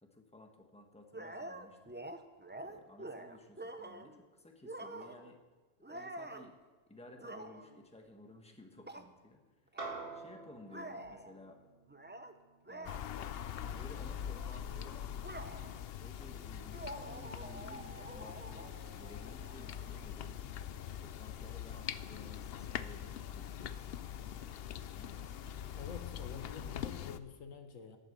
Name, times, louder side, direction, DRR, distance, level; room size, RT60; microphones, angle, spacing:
voice 1, 0.0-1.8 2.6-5.4 5.9-6.5 6.9-9.4 10.1-11.6 12.7-13.0 13.7-15.1 16.0-20.5 21.0-25.3, left 2 dB, 5° left, 3 dB, 1.4 m, -56 dB
sound 1, 1.1-4.2 4.6-5.4 5.8-6.5 7.1-7.8 8.8-9.1 9.7-9.9 10.7-11.3 11.9-12.3 12.7-13.0 13.6-13.8 14.0-15.9 16.7-20.1, right 1 dB, 15° right, 0.5 m, -47 dB
sound 2, 9.8-14.4, right 3 dB, 45° right, 2.3 m, -49 dB
sound 3, 12.8-27.2, left 9 dB, 60° left, 0.7 m, -43 dB
voice 2, 25.7-28.0, left 6 dB, 80° left, 6 dB, 1.6 m, -48 dB
19.0 x 8.2 x 6.8 m, 1.3 s
omnidirectional pair, 1.3 m